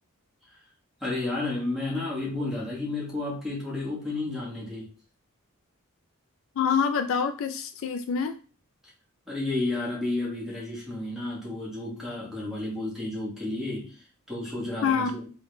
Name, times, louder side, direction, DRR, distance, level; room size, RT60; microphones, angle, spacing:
voice 1, 1.0-4.9 9.3-15.3, left 2 dB, ahead, -6 dB, 1.4 m, -32 dB
voice 2, 6.6-8.3 14.8-15.2, left 6 dB, 65° left, 9 dB, 0.3 m, -26 dB
3.6 x 2.3 x 3.1 m, 0.37 s
head